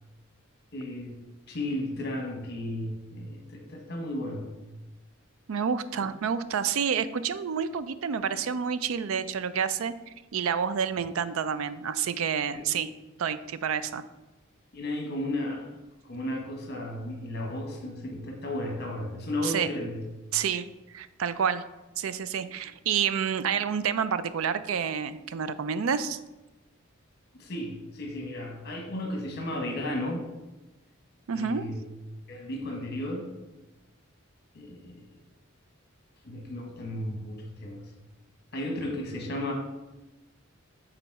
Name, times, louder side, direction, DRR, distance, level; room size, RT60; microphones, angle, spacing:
voice 1, 0.7-1.2 1.5-4.6 12.5-12.8 14.7-15.7 16.0-20.0 27.3-30.2 31.3-31.8 32.3-33.3 34.5-35.1 36.2-37.9 38.5-39.5, left 1 dB, 50° left, 2 dB, 1.2 m, -34 dB
voice 2, 5.5-9.9 10.3-12.9 13.2-14.0 19.4-19.7 20.3-21.6 22.0-26.2 31.3-31.7, right 7 dB, 80° right, 14 dB, 0.4 m, -29 dB
7.0 x 3.9 x 4.6 m, 1.1 s
head